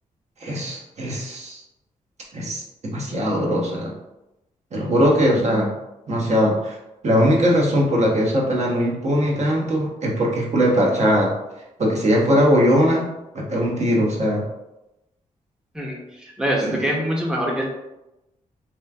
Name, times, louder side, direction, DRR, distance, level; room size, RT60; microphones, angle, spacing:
voice 1, 0.4-1.6 2.3-3.9 4.7-5.7 6.1-6.8 7.0-11.3 11.8-14.4, equal, 50° right, -2 dB, 0.8 m, -20 dB
voice 2, 15.7-17.6, equal, 5° right, -2 dB, 0.6 m, -24 dB
3.0 x 2.4 x 2.2 m, 0.94 s
cardioid pair, 60°, 15 cm